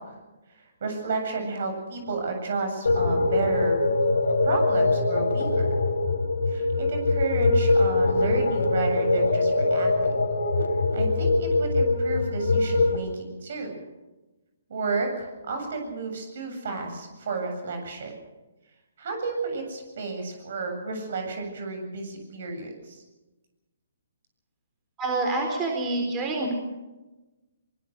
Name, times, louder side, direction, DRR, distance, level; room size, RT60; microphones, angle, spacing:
voice 1, 0.8-3.8 4.4-5.7 6.5-10.1 10.9-13.7 14.7-18.1 19.0-23.0, right 4 dB, 55° right, 5 dB, 7.8 m, -31 dB
sound 1, 2.9-13.0, left 2 dB, 75° left, 3.3 m, -23 dB
voice 2, 25.0-26.5, right 2 dB, 20° right, 2 dB, 4.2 m, -27 dB
24.0 x 21.5 x 6.5 m, 1.1 s
figure-of-eight pair, 135°, 0 cm